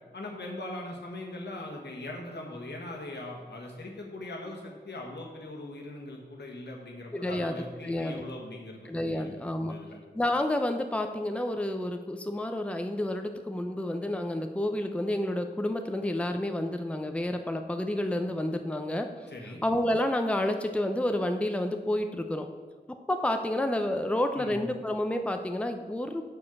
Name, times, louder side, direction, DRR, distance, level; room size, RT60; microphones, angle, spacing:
voice 1, 0.1-9.3 9.6-10.0 19.3-19.6 24.4-24.6, left 1 dB, 80° left, 0 dB, 1.3 m, -40 dB
voice 2, 7.1-7.5 7.8-8.2 8.9-9.7 10.1-19.1 19.6-22.5 23.1-26.2, left 1 dB, 5° left, 6 dB, 0.6 m, -29 dB
6.5 x 4.8 x 6.0 m, 1.4 s
wide cardioid pair, 50°, 17 cm